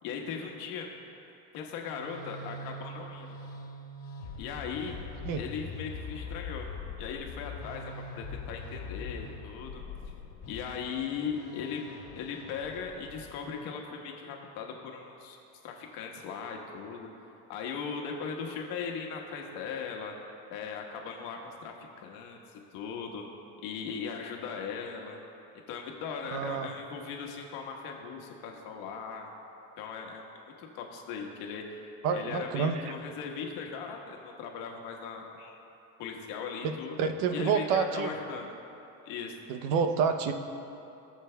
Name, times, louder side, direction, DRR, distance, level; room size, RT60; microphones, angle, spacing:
voice 1, 0.0-0.9 1.5-3.4 4.4-5.0 5.4-6.7 7.0-9.8 10.5-11.8 12.1-15.4 15.6-17.1 17.5-20.1 20.5-23.2 23.6-25.2 25.7-29.3 29.8-30.2 30.6-35.6 36.0-38.5 39.0-39.5, left 6 dB, 70° left, 1 dB, 1.4 m, -38 dB
sound 1, 1.6-13.5, left 3 dB, 40° left, 1.7 m, -43 dB
voice 2, 26.3-26.7 32.0-32.8 36.6-36.7 37.0-38.1 39.5-40.3, right 6 dB, 70° right, 7 dB, 0.8 m, -28 dB
20.5 x 7.2 x 2.3 m, 2.8 s
cardioid pair, 135°, 37 cm